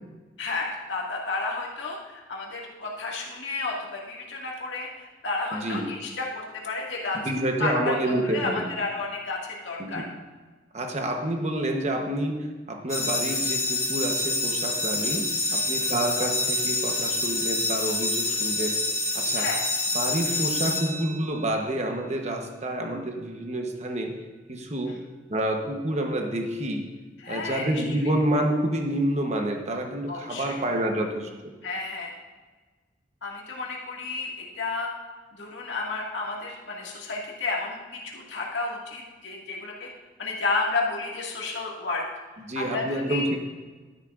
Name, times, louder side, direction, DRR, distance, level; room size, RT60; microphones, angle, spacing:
voice 1, 0.4-7.2 7.6-10.1 15.0-15.1 15.5-15.9 19.4-19.6 20.3-20.4 24.9-25.0 27.2-27.8 30.1-30.6 31.6-32.2 33.2-34.9 35.4-39.9 40.2-42.0 42.5-43.2, left 3 dB, 80° left, -2 dB, 2.0 m, -32 dB
voice 2, 5.5-5.9 7.1-8.7 9.8-10.1 10.7-18.9 19.1-19.5 19.9-24.2 24.5-26.9 27.3-31.5 42.5-43.4, right 1 dB, 40° right, 3 dB, 1.0 m, -28 dB
sound 1, 12.9-21.6, left 2 dB, 15° left, 1.1 m, -27 dB
12.0 x 10.5 x 2.5 m, 1.3 s
head